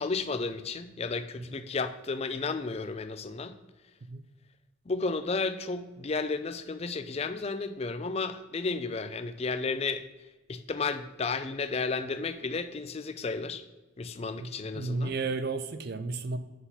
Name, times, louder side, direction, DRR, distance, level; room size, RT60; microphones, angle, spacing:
voice 1, 0.0-3.5 4.9-10.0 10.5-13.6 14.0-15.1, left 4 dB, 30° left, 11 dB, 0.4 m, -33 dB
voice 2, 14.4-16.4, right 3 dB, 50° right, 11 dB, 0.5 m, -33 dB
8.1 x 4.1 x 5.5 m, 1.1 s
head